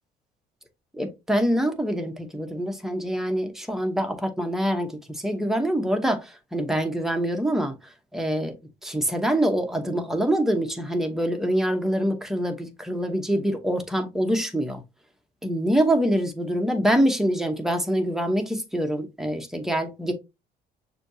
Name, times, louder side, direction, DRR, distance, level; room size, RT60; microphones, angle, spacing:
voice 1, 0.9-8.5 8.8-14.8 15.4-20.1, equal, ahead, 0.9 m, -25 dB
6.3 x 2.7 x 2.7 m
cardioid pair, 110°, 17 cm